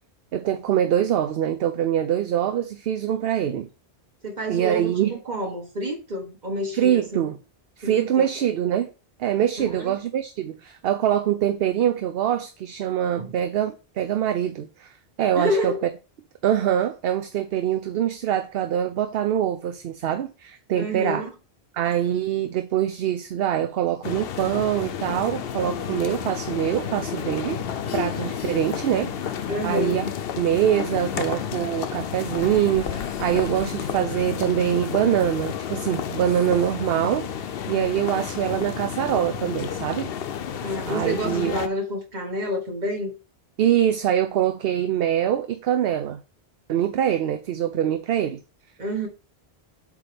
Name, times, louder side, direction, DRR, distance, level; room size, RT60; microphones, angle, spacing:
voice 1, 0.3-3.7 4.5-5.2 6.7-7.3 7.8-8.9 9.2-15.7 16.4-21.2 21.7-27.6 27.9-40.1 40.9-41.6 43.6-46.2 46.7-48.4, right 10 dB, 65° right, 0.8 m, -24 dB
voice 2, 4.2-7.2 7.8-8.3 9.6-10.0 13.2-13.3 15.4-15.8 20.7-21.3 29.5-30.0 40.6-43.1 48.8-49.1, equal, 45° right, 1.7 m, -29 dB
sound 1, 24.0-41.7, left 8 dB, 65° left, 0.8 m, -31 dB
8.3 x 3.0 x 5.1 m
omnidirectional pair, 1.1 m